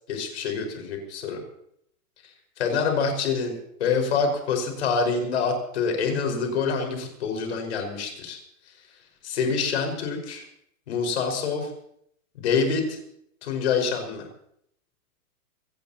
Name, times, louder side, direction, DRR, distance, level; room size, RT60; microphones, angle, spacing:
voice 1, 0.1-1.4 2.2-3.5 3.8-8.4 9.2-10.5 10.9-11.7 12.3-13.0 13.4-14.2, left 5 dB, 45° left, 3 dB, 5.1 m, -26 dB
24.0 x 18.0 x 2.9 m, 0.71 s
hypercardioid pair, 170°, 45 cm